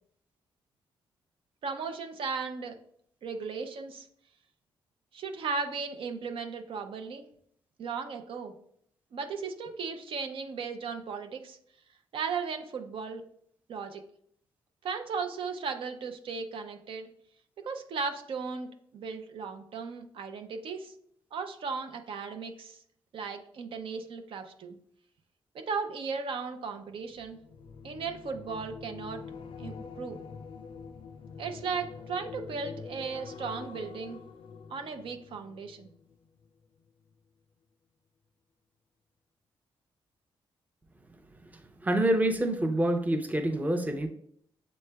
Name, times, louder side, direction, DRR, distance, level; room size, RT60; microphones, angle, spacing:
voice 1, 1.6-2.8 3.2-4.1 5.1-7.2 7.8-8.5 9.1-11.6 12.1-13.2 13.7-14.0 14.8-17.1 17.6-20.9 21.3-22.8 23.1-24.8 25.5-27.4 27.8-29.2 29.6-30.2 31.4-34.2 34.7-35.9, right 5 dB, 70° right, 6 dB, 0.6 m, -36 dB
sound 1, 27.1-36.5 36.8-37.1, left 5 dB, 70° left, 0.4 m, -45 dB
voice 2, 41.4-44.1, right 1 dB, 15° right, 6 dB, 0.6 m, -27 dB
7.3 x 3.1 x 2.3 m, 0.65 s
cardioid pair, 95°, 9 cm